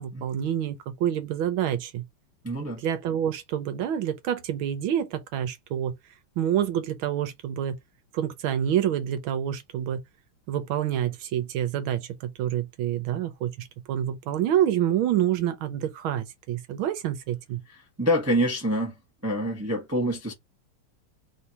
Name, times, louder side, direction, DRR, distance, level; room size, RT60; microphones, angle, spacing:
voice 1, 0.0-2.0 2.8-5.9 6.4-7.8 8.1-10.0 10.5-17.6, right 10 dB, 75° right, 1.5 m, -27 dB
voice 2, 2.4-2.8 17.7-18.9 19.2-20.3, equal, 20° right, 0.3 m, -26 dB
3.7 x 2.8 x 4.6 m
omnidirectional pair, 2.4 m